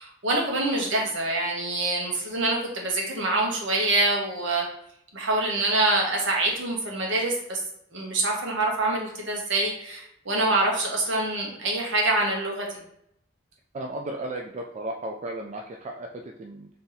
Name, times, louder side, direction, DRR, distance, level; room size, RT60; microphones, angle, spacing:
voice 1, 0.0-4.6 5.1-7.6 7.9-12.7, right 2 dB, 65° right, 0 dB, 1.0 m, -25 dB
voice 2, 13.7-16.7, right 1 dB, 35° right, 2 dB, 0.3 m, -35 dB
3.4 x 2.8 x 3.8 m, 0.73 s
head